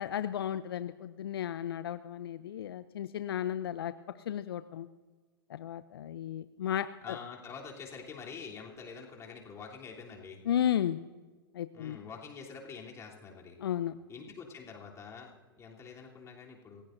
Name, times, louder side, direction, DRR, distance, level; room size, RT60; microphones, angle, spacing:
voice 1, 0.0-3.9 4.3-4.9 5.5-7.2 10.4-11.0 11.5-12.0 13.6-14.0, left 10 dB, 70° left, 13 dB, 0.6 m, -34 dB
voice 2, 7.0-10.4 11.7-13.6 14.1-16.8, left 5 dB, 20° left, -2 dB, 3.3 m, -46 dB
26.5 x 15.5 x 2.7 m, 1.4 s
hypercardioid pair, 110°, 13 cm